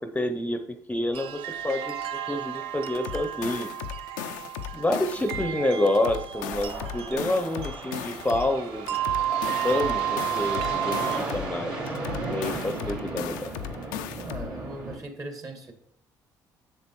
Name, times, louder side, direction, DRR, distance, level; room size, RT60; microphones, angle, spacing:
voice 1, 0.1-0.6 0.9-2.0 2.3-3.7 4.7-9.0 9.3-11.8 12.3-13.5, left 1 dB, 15° left, 7 dB, 0.7 m, -28 dB
sound 1, 1.1-11.2, right 11 dB, 70° right, 0.5 m, -32 dB
sound 2, 2.9-5.5 5.9-8.5 8.9-11.5 11.9-14.5, left 11 dB, 85° left, 0.4 m, -37 dB
sound 3, 6.3-15.0, right 2 dB, 55° right, 2.8 m, -35 dB
voice 2, 14.2-15.7, right 2 dB, 35° right, 5 dB, 1.8 m, -39 dB
7.5 x 7.0 x 3.1 m, 0.71 s
hypercardioid pair, 55°, 10 cm